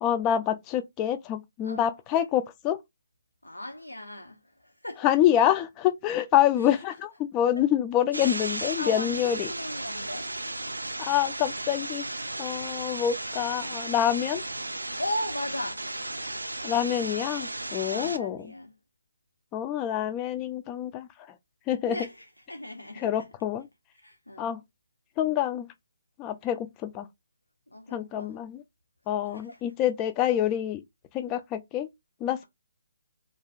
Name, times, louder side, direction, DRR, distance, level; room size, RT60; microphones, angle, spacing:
voice 1, 0.0-2.8 5.0-9.5 11.0-12.0 12.4-14.4 16.6-18.4 19.5-21.1 21.7-22.0 23.0-23.7 24.4-24.6 25.2-25.7 26.2-27.1 27.9-28.6 29.1-30.8 31.1-31.9 32.2-32.4, left 11 dB, 20° left, 0.3 m, -26 dB
voice 2, 3.4-5.1 6.6-6.7 8.5-10.3 15.0-15.9 17.8-18.7 21.8-23.3 24.0-24.5 27.7-28.4 29.3-29.6, left 1 dB, 85° left, 0.4 m, -37 dB
sound 1, 8.1-18.2, right 2 dB, 80° right, 0.4 m, -35 dB
2.5 x 2.3 x 3.0 m
figure-of-eight pair, 140°, 0 cm